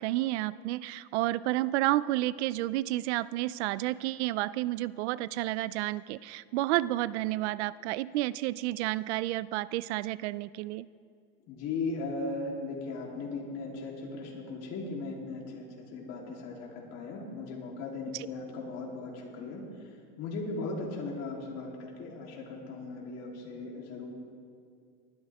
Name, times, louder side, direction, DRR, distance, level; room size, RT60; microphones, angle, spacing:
voice 1, 0.0-10.9 18.1-18.3, right 16 dB, 90° right, 19 dB, 0.5 m, -31 dB
voice 2, 11.5-15.6 15.9-19.6 20.2-24.1, left 3 dB, 50° left, -2 dB, 3.3 m, -37 dB
19.5 x 12.5 x 3.5 m, 2.2 s
supercardioid pair, 140°, 32 cm